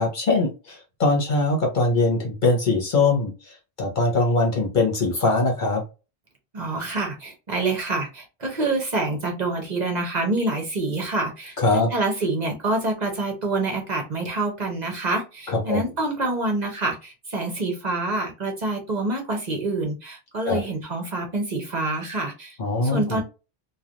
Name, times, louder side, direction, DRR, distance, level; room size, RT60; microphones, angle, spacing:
voice 1, 0.0-3.3 3.8-5.8 11.6-11.9 15.5-15.9 20.4-20.6 22.6-23.2, left 3 dB, 50° left, 0 dB, 1.2 m, -22 dB
voice 2, 6.5-22.6 22.8-23.2, right 2 dB, 45° right, 2 dB, 0.9 m, -27 dB
3.2 x 2.4 x 2.6 m, 0.29 s
omnidirectional pair, 1.0 m